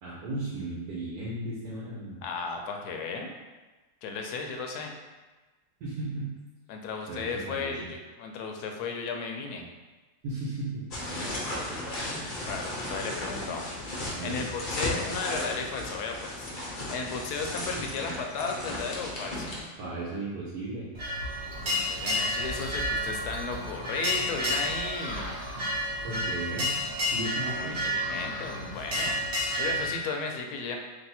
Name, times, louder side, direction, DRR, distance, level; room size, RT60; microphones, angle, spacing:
voice 1, 0.0-2.2 5.8-6.3 7.1-7.9 10.2-11.3 14.1-14.4 19.8-20.9 26.0-26.7 27.1-27.8, right 2 dB, 85° right, -7 dB, 1.4 m, -35 dB
voice 2, 2.2-3.3 4.0-4.9 6.7-9.7 12.0-13.7 14.2-16.5 16.9-19.5 21.9-25.4 27.5-29.2 29.6-30.8, left 4 dB, 75° left, 3 dB, 1.1 m, -35 dB
sound 1, 10.9-19.6, left 1 dB, 45° left, 0.7 m, -35 dB
sound 2, 20.9-29.9, left 1 dB, 50° right, 1.0 m, -31 dB
3.4 x 2.6 x 4.1 m, 1.2 s
omnidirectional pair, 1.7 m